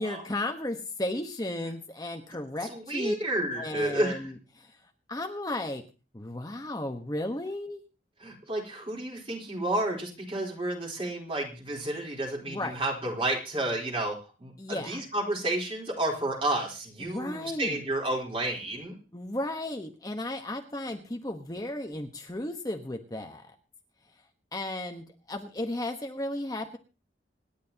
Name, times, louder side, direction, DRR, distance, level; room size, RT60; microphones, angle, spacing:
voice 1, 0.0-3.1 3.6-4.8 5.1-5.8 6.1-7.8 12.5-12.8 14.6-15.0 17.0-17.8 19.1-23.5 24.5-26.8, left 1 dB, 20° left, 4 dB, 1.2 m, -34 dB
voice 2, 2.6-4.3 8.2-19.0, right 1 dB, 30° right, 0 dB, 4.0 m, -31 dB
26.5 x 10.5 x 2.9 m, 0.32 s
head